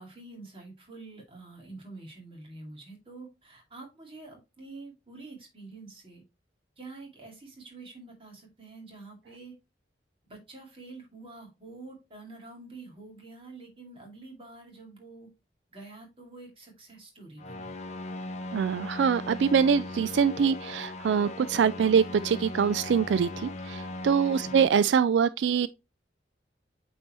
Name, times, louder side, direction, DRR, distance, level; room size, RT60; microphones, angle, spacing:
voice 1, 0.0-6.2 6.8-9.5 10.2-15.3 15.7-17.7 24.3-24.6, right 3 dB, 30° right, 2.5 m, -47 dB
sound 1, 17.4-24.7, left 2 dB, 40° left, 0.7 m, -38 dB
voice 2, 18.5-25.7, right 6 dB, 90° right, 0.3 m, -24 dB
8.7 x 4.4 x 3.0 m
head